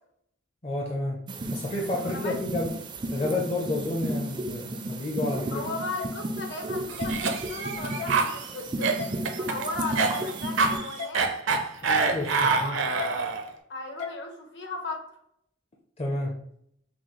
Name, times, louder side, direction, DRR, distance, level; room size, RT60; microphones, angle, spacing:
voice 1, 0.6-1.2 1.5-2.7 3.1-5.6 12.1-12.8 16.0-16.3, left 2 dB, 30° left, -1 dB, 0.5 m, -30 dB
sound 1, 1.3-10.8, right 1 dB, 25° right, 0.4 m, -34 dB
voice 2, 1.9-2.4 5.5-9.0 9.4-11.3 12.2-13.1 13.7-15.0, left 2 dB, 60° left, 3 dB, 0.9 m, -36 dB
sound 2, 6.0-6.1 7.0-7.1 8.0-8.2 9.0-9.1 10.0-10.2 11.0-11.1 12.0-12.2 13.0-13.1 14.0-14.2, left 6 dB, 85° left, 0.6 m, -34 dB
Cough, 6.9-13.5, right 4 dB, 75° right, 0.6 m, -26 dB
5.9 x 2.3 x 3.1 m, 0.70 s
head